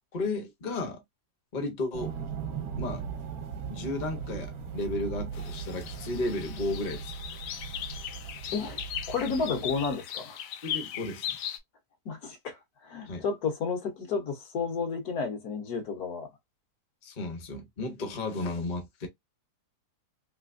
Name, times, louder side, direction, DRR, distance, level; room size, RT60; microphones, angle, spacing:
voice 1, 0.1-1.0 1.5-2.1 2.8-3.0 3.7-7.1 10.6-11.4 13.1-13.2 17.0-19.1, left 2 dB, 35° left, 0.8 m, -33 dB
sound 1, 1.9-9.9, right 6 dB, 65° right, 1.2 m, -38 dB
sound 2, 5.3-11.6, left 10 dB, 90° left, 1.2 m, -38 dB
voice 2, 9.1-10.4 12.0-16.3, left 5 dB, 65° left, 1.4 m, -32 dB
3.3 x 3.0 x 2.5 m
omnidirectional pair, 1.8 m